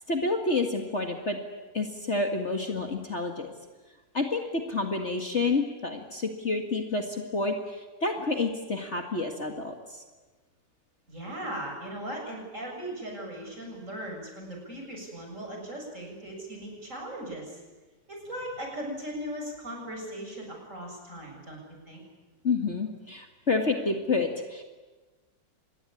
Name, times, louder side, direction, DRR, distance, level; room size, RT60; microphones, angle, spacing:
voice 1, 0.1-1.4 1.7-3.5 4.1-10.0 22.4-24.6, left 3 dB, 40° left, 4 dB, 2.1 m, -29 dB
voice 2, 11.1-17.6 18.1-21.6 21.9-22.0, right 1 dB, 40° right, 0 dB, 7.7 m, -38 dB
26.0 x 20.5 x 9.8 m, 1.2 s
omnidirectional pair, 2.0 m